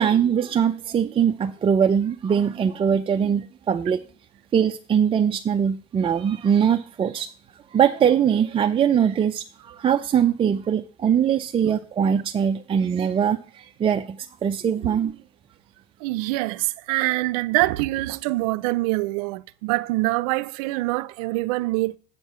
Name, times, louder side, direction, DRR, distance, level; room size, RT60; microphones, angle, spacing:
voice 1, 0.0-4.0 4.5-7.3 7.7-15.2, right 8 dB, 30° right, 0.5 m, -22 dB
voice 2, 16.0-22.0, right 20 dB, 85° right, 0.5 m, -25 dB
8.2 x 4.6 x 6.8 m
supercardioid pair, 105°, 19 cm